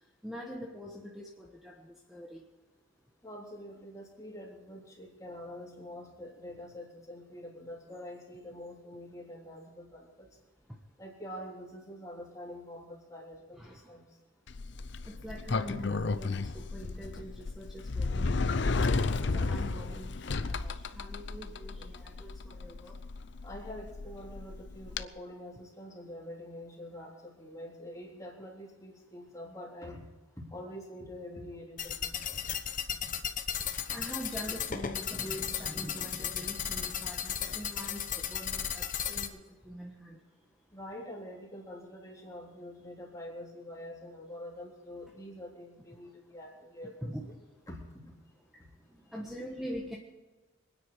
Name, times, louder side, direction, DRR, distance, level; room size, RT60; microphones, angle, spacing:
voice 1, 0.2-2.4 13.5-13.8 15.0-23.0 33.9-40.2 47.0-47.3 48.9-50.0, equal, ahead, -2 dB, 1.3 m, -44 dB
voice 2, 3.2-10.3 11.0-14.0 15.7-15.9 16.6-17.0 20.1-20.2 21.9-22.0 23.4-30.0 30.4-32.4 33.9-34.0 40.7-47.3 47.7-48.1 49.1-49.2, left 1 dB, 15° left, -3 dB, 3.4 m, -46 dB
Sliding door, 14.5-25.0, left 3 dB, 60° left, 0.6 m, -33 dB
sound 1, 31.8-39.3, left 8 dB, 40° left, 1.0 m, -35 dB
25.5 x 9.8 x 4.8 m, 1.2 s
head